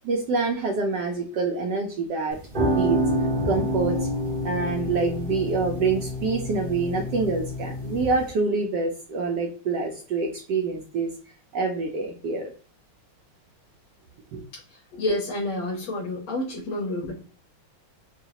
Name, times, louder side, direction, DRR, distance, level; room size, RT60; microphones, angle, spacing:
voice 1, 0.0-2.4 2.7-3.0 3.4-4.1 4.4-11.1 11.5-12.5 14.3-14.4, right 4 dB, 70° right, 1.1 m, -26 dB
sound 1, 2.3-8.3, equal, 40° right, 0.7 m, -28 dB
voice 2, 14.5-17.1, left 1 dB, 70° left, 1.8 m, -29 dB
4.7 x 2.4 x 2.8 m
omnidirectional pair, 2.2 m